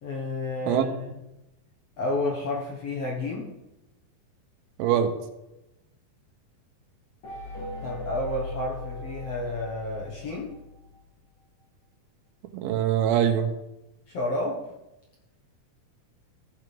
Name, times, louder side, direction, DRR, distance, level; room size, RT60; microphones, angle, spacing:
voice 1, 0.0-1.2 2.0-3.5 7.8-10.5 14.1-14.6, left 2 dB, 60° left, -3 dB, 1.7 m, -31 dB
voice 2, 4.8-5.1 12.5-13.5, right 9 dB, 80° right, 7 dB, 2.5 m, -23 dB
sound 1, 7.2-11.0, left 2 dB, 45° left, 2.4 m, -38 dB
15.5 x 7.3 x 3.4 m, 0.95 s
omnidirectional pair, 4.4 m